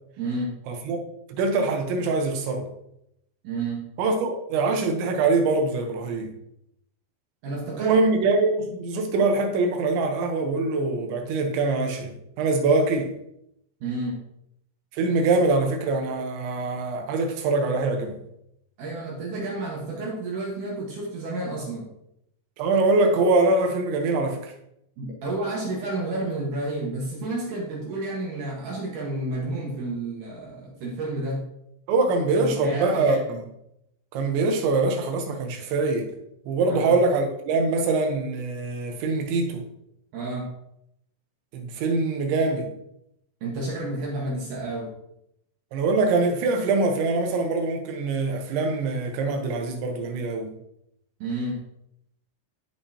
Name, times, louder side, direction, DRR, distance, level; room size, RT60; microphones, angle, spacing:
voice 1, 0.2-0.5 3.4-3.8 7.4-7.9 13.8-14.2 18.8-21.9 25.0-31.4 32.4-33.2 36.7-36.9 40.1-40.5 43.4-44.9 51.2-51.6, right 2 dB, 60° right, 2.5 m, -30 dB
voice 2, 0.7-1.0 1.3-2.7 4.0-6.3 7.7-13.1 14.9-18.2 22.6-24.5 31.9-33.5 34.1-36.1 36.5-39.6 41.5-42.7 45.7-50.5, right 3 dB, 90° right, 3.4 m, -23 dB
13.0 x 5.4 x 2.8 m
omnidirectional pair, 5.1 m